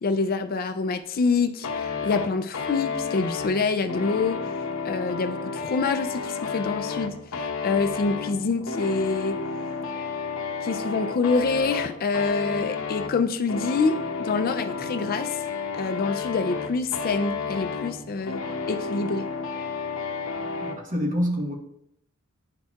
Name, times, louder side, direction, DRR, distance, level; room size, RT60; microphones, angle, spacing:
voice 1, 0.0-4.4 4.8-9.4 10.6-15.4 15.7-18.4 18.7-19.3, left 4 dB, 45° left, 8 dB, 0.4 m, -26 dB
sound 1, 1.6-20.8, left 5 dB, 75° left, 0.8 m, -31 dB
voice 2, 20.6-21.5, equal, 40° right, 0 dB, 1.3 m, -26 dB
10.5 x 4.4 x 2.4 m, 0.73 s
head